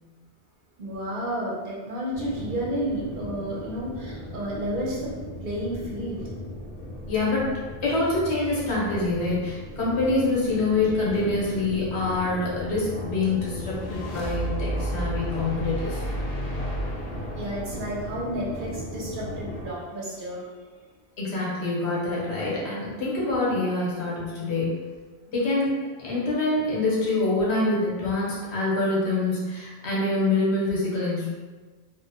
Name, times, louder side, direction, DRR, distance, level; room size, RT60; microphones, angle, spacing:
voice 1, 0.8-5.2 5.4-6.2 7.8-8.0 8.4-8.5 10.9-11.1 17.3-20.4, equal, 60° right, -4 dB, 0.7 m, -31 dB
sound 1, 2.1-19.7, equal, 35° left, 1.0 m, -37 dB
voice 2, 7.1-7.5 7.8-16.0 21.2-24.8 25.3-25.7 26.0-31.3, left 2 dB, 80° left, -7 dB, 1.2 m, -25 dB
sound 2, 13.5-18.8, right 1 dB, 55° left, 0.4 m, -32 dB
2.9 x 2.0 x 2.6 m, 1.4 s
omnidirectional pair, 1.1 m